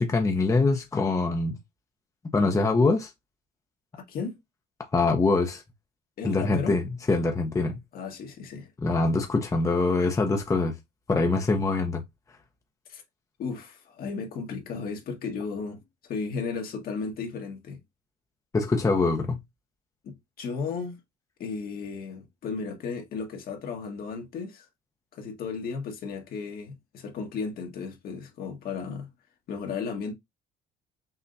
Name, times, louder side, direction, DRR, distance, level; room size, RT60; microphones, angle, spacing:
voice 1, 0.0-1.6 2.3-3.1 4.9-5.6 6.2-7.8 8.8-10.7 11.1-12.0 18.5-19.4, left 3 dB, 20° left, 0.8 m, -24 dB
voice 2, 3.9-4.4 6.2-6.8 7.9-8.7 12.9-13.0 13.4-17.8 20.0-21.0 21.4-24.7 25.1-29.1 29.5-30.1, left 5 dB, 60° left, 1.6 m, -34 dB
5.7 x 2.8 x 2.6 m
cardioid pair, 110°, 17 cm